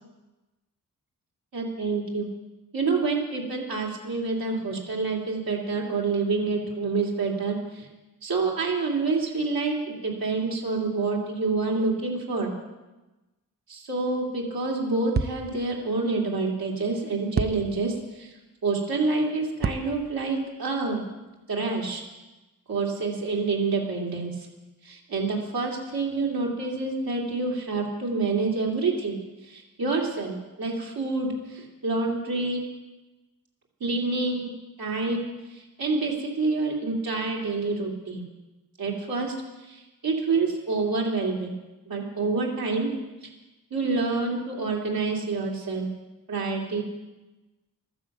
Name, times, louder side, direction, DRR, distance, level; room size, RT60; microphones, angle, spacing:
voice 1, 1.5-2.3 2.7-7.9 8.2-12.5 13.7-18.3 18.6-21.0 21.5-22.0 22.7-24.5 24.8-29.2 29.4-32.6 33.8-34.5 34.8-35.2 35.5-38.3 38.8-39.3 39.6-41.5 41.9-42.9 43.2-43.3 43.7-45.9 46.3-46.8, right 3 dB, 80° right, -3 dB, 2.6 m, -27 dB
sound 1, 14.2-14.3 15.1-15.8 17.3-18.2 19.6-20.5, right 5 dB, 30° right, 0.5 m, -30 dB
13.0 x 10.5 x 7.8 m, 1.1 s
wide cardioid pair, 160°, 35 cm